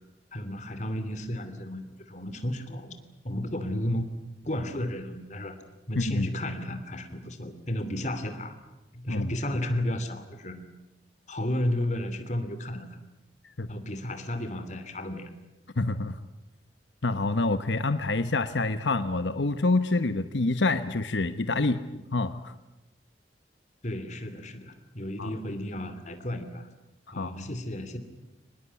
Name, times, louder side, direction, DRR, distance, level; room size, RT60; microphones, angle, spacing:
voice 1, 0.3-3.0 3.2-4.1 4.4-5.6 5.9-8.6 8.9-10.6 11.3-12.9 13.7-15.3 23.8-26.7 27.1-28.0, left 1 dB, 40° left, 9 dB, 2.9 m, -33 dB
voice 2, 6.0-6.3 9.1-9.3 13.6-13.7 15.8-16.2 17.0-21.8 22.1-22.5 25.2-25.3 27.2-27.5, left 2 dB, 85° left, 10 dB, 1.0 m, -27 dB
24.5 x 20.0 x 9.6 m, 1.0 s
head